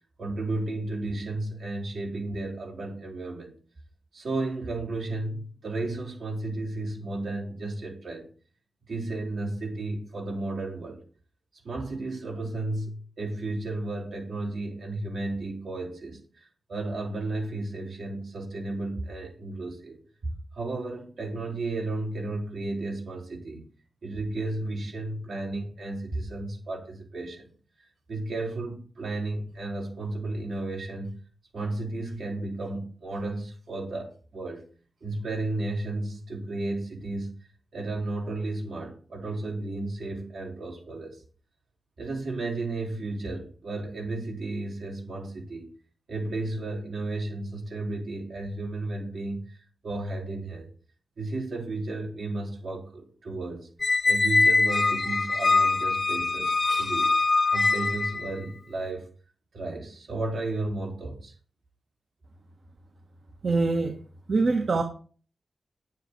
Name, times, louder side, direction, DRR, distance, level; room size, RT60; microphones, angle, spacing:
voice 1, 0.2-3.5 4.1-8.3 8.9-11.0 11.6-23.7 24.0-27.5 27.8-31.2 31.5-34.6 35.0-37.4 37.7-41.2 42.0-45.7 46.1-50.7 51.2-53.7 54.0-57.1 57.5-59.1 59.5-61.3, right 2 dB, 85° right, 4.2 m, -33 dB
Squeak, 53.8-58.3, left 3 dB, 50° left, 1.1 m, -23 dB
voice 2, 63.4-64.0 64.3-64.8, right 3 dB, 70° right, 1.4 m, -23 dB
9.3 x 9.2 x 4.6 m
cardioid pair, 55°, 0 cm